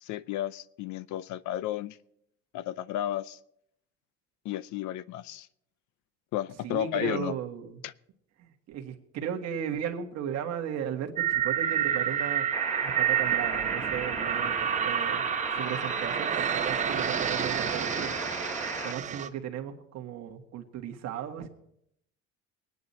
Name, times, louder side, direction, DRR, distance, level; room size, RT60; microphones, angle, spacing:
voice 1, 0.0-2.0 2.5-3.4 4.4-5.5 6.3-7.3 7.8-7.9, left 13 dB, 65° left, 18 dB, 0.6 m, -33 dB
voice 2, 6.6-7.8 8.4-12.5 12.8-15.2 15.5-18.1 18.8-21.5, right 9 dB, 55° right, 4 dB, 1.7 m, -36 dB
sound 1, 11.2-19.3, right 9 dB, 25° right, 0.6 m, -29 dB
sound 2, 12.5-18.9, equal, 5° left, 1.3 m, -37 dB
23.5 x 9.6 x 4.3 m, 0.75 s
cardioid pair, 150°, 31 cm